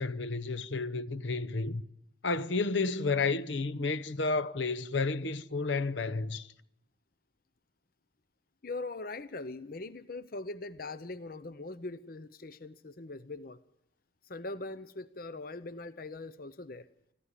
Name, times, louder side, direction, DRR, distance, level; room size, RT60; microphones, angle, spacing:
voice 1, 0.0-1.8 2.2-6.5, left 3 dB, 75° left, 0.9 m, -31 dB
voice 2, 8.6-13.6 14.3-16.9, left 2 dB, 50° left, 0.8 m, -41 dB
25.5 x 15.0 x 9.9 m
head